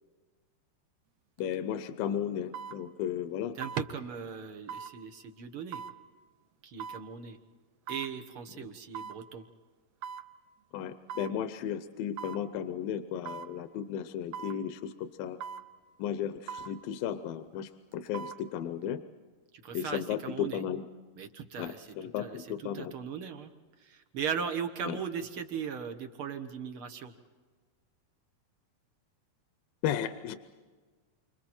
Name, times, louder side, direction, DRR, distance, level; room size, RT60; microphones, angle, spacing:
voice 1, 1.4-3.5 8.6-8.7 10.7-15.4 16.0-19.0 19.7-20.8 21.6-22.9 24.9-25.0 29.8-30.4, left 9 dB, 80° left, 9 dB, 2.5 m, -34 dB
sound 1, 1.4-1.5 2.5-2.8 3.6-3.9 4.7-4.9 5.7-6.0 6.8-7.0 7.9-8.1 8.9-9.2 10.0-10.3 11.1-11.4 12.2-12.4 13.2-13.5 14.3-14.6 15.4-15.7 16.5-16.7 17.9-18.4 18.8-18.9, right 7 dB, 80° right, 1.4 m, -40 dB
voice 2, 3.5-5.8 6.6-7.4 7.9-9.4 19.6-20.6 21.2-23.5 23.8-27.1, right 7 dB, 55° right, 7 dB, 1.5 m, -38 dB
29.5 x 26.5 x 4.4 m, 1.4 s
omnidirectional pair, 4.0 m